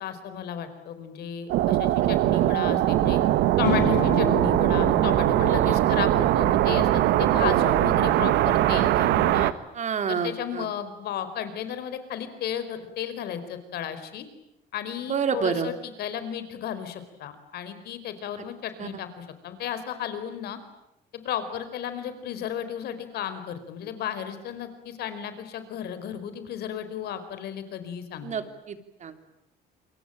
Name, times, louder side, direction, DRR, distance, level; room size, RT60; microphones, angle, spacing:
voice 1, 0.0-3.2 3.6-9.5 10.1-14.3 14.7-20.6 21.1-28.5, left 9 dB, 70° left, 11 dB, 4.6 m, -34 dB
sound 1, 1.5-9.5, right 14 dB, 80° right, 1.3 m, -21 dB
sound 2, 3.6-8.5, left 10 dB, 90° left, 3.1 m, -34 dB
voice 2, 5.5-5.8 7.3-7.7 9.7-10.7 15.1-15.7 18.8-18.9 28.2-29.2, right 6 dB, 45° right, 9 dB, 3.3 m, -29 dB
28.0 x 24.0 x 9.0 m, 0.85 s
cardioid pair, 110°, 17 cm